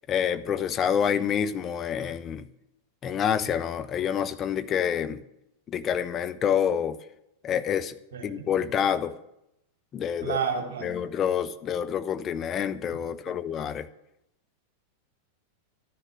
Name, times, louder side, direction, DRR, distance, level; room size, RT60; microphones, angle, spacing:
voice 1, 0.1-2.5 3.0-5.2 5.7-7.0 7.4-7.9 8.2-9.1 9.9-10.4 10.8-13.9, left 8 dB, 30° left, 0.7 m, -27 dB
voice 2, 8.1-8.4 10.2-11.0, right 6 dB, 50° right, 2.9 m, -30 dB
13.0 x 9.9 x 6.5 m
figure-of-eight pair, 90°, 0 cm